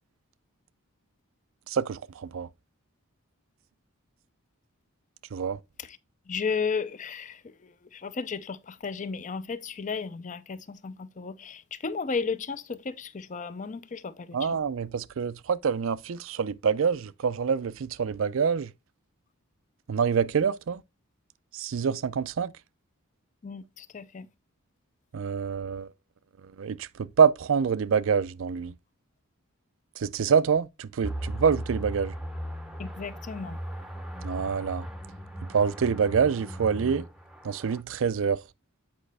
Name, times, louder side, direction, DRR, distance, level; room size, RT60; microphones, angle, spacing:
voice 1, 1.7-2.5 5.3-5.6 14.3-18.7 19.9-20.8 21.5-22.5 25.1-25.9 26.6-28.7 30.0-32.1 34.2-34.9 35.5-37.1 37.4-38.4, right 6 dB, 60° right, 0.4 m, -26 dB
voice 2, 6.3-14.6 23.4-24.3 32.8-33.6, left 5 dB, 35° left, 0.4 m, -34 dB
sound 1, 31.0-37.8, right 1 dB, ahead, 0.7 m, -37 dB
8.7 x 5.0 x 3.3 m
head